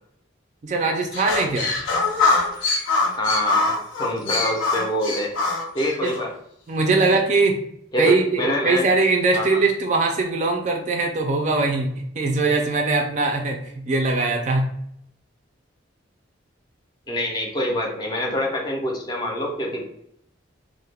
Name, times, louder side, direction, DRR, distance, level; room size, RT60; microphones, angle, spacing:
voice 1, 0.6-1.7 6.0-6.1 6.7-7.6 8.0-14.7, right 3 dB, 35° right, 3 dB, 0.3 m, -21 dB
sound 1, 1.1-6.2, left 3 dB, 85° left, 0.7 m, -23 dB
voice 2, 3.2-3.7 4.0-5.3 5.7-6.3 7.1-7.2 7.9-8.8 9.3-9.6 17.1-19.9, left 1 dB, 20° left, 0 dB, 0.5 m, -25 dB
2.2 x 2.0 x 3.2 m, 0.73 s
head